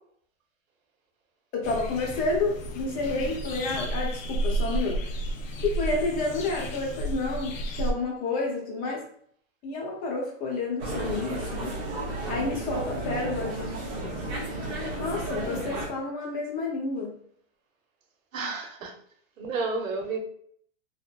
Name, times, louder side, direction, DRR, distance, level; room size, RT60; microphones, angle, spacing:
voice 1, 1.5-5.0 5.6-9.0 9.6-11.7 12.3-14.2 15.0-17.2, left 3 dB, 25° left, -1 dB, 0.7 m, -30 dB
sound 1, 1.6-7.9, right 1 dB, 85° left, 0.6 m, -32 dB
sound 2, 10.8-15.9, right 1 dB, 15° right, 0.3 m, -33 dB
voice 2, 18.3-18.9 19.4-20.2, right 4 dB, 85° right, 3 dB, 0.8 m, -31 dB
2.9 x 2.0 x 2.3 m, 0.63 s
hypercardioid pair, 135°, 38 cm